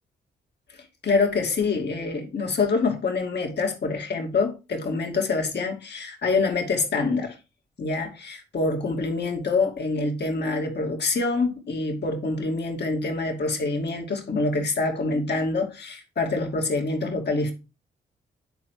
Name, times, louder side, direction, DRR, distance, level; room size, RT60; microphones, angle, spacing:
voice 1, 1.0-7.3 7.8-17.5, left 3 dB, 55° left, 2.5 m, -26 dB
9.4 x 4.5 x 4.6 m
hypercardioid pair, 40°, 20 cm